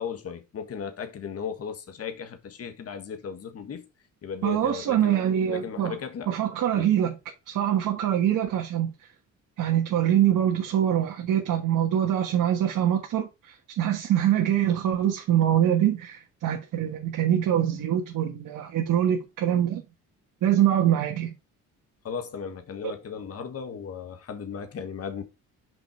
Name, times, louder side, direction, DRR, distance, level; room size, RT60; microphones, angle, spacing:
voice 1, 0.0-3.8 4.2-6.3 6.7-6.9 22.0-25.2, left 7 dB, 45° left, 1.5 m, -36 dB
voice 2, 4.4-6.0 6.3-7.1 7.5-8.9 9.6-19.8 20.4-21.3, right 10 dB, 65° right, 1.5 m, -24 dB
6.2 x 5.3 x 4.6 m
cardioid pair, 105°, 33 cm